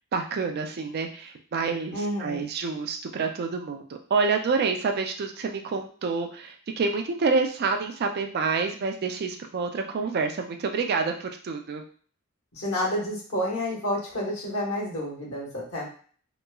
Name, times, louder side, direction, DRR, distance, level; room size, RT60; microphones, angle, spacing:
voice 1, 0.1-11.8, right 4 dB, 45° right, 4 dB, 0.4 m, -28 dB
voice 2, 1.9-2.4 12.5-15.8, left 1 dB, 70° left, -4 dB, 1.2 m, -29 dB
2.9 x 2.3 x 2.2 m, 0.44 s
head